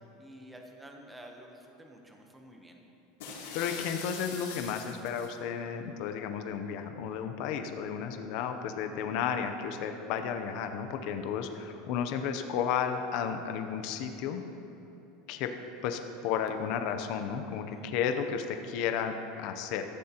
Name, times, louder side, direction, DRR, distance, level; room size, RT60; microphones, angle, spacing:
voice 1, 0.2-2.8 17.7-17.8, right 1 dB, 5° right, 2 dB, 0.9 m, -50 dB
sound 1, 3.2-5.3, left 5 dB, 85° left, 2.7 m, -42 dB
voice 2, 3.5-14.4 15.3-15.5 15.8-19.8, left 7 dB, 45° left, 6 dB, 0.6 m, -33 dB
14.0 x 13.5 x 2.9 m, 2.9 s
supercardioid pair, 180°, 0 cm